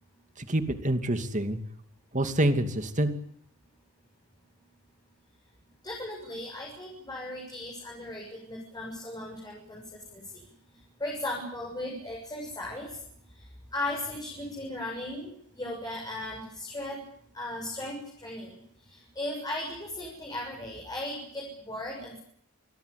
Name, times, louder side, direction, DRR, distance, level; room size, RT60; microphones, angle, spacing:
voice 1, 0.5-1.6 2.1-3.1, right 1 dB, 35° right, 8 dB, 2.7 m, -26 dB
voice 2, 5.8-9.8 10.1-10.2 11.0-13.0 13.7-17.0 17.3-18.5 18.9-22.2, left 1 dB, 20° left, -1 dB, 7.3 m, -37 dB
28.5 x 20.5 x 8.5 m, 0.67 s
head